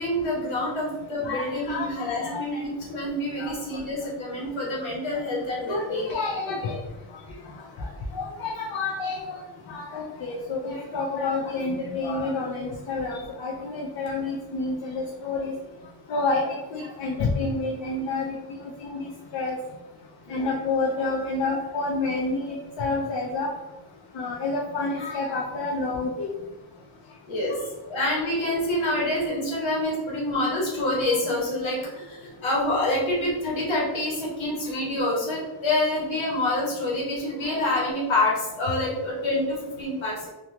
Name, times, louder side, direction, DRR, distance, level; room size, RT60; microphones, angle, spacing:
voice 1, 0.0-6.2 6.5-6.6 13.1-13.2 20.3-20.5 27.3-40.3, left 1 dB, 85° left, -4 dB, 1.1 m, -27 dB
voice 2, 1.2-2.6 3.4-3.8 5.7-6.8 7.8-7.9 8.1-9.4 9.7-15.5 16.1-19.6 20.3-23.5 24.1-26.3 31.1-31.2 34.7-34.8, left 3 dB, 70° left, -2 dB, 0.5 m, -29 dB
2.3 x 2.3 x 2.8 m, 1.0 s
wide cardioid pair, 160°, 46 cm